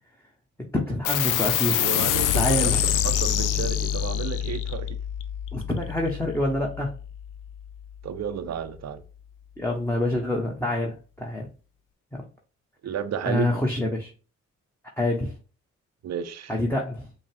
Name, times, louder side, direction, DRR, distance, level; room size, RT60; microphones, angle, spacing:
voice 1, 0.7-1.8 2.3-2.8 5.5-6.9 9.6-11.5 12.1-12.3 13.2-14.1 15.0-15.4 16.5-17.1, left 1 dB, 5° left, 1.1 m, -26 dB
sound 1, 1.0-7.9, left 10 dB, 75° left, 0.5 m, -26 dB
voice 2, 1.8-4.9 8.0-9.0 12.8-13.5 16.0-16.5, right 8 dB, 55° right, 0.6 m, -32 dB
5.3 x 2.3 x 3.4 m
supercardioid pair, 50°, 32 cm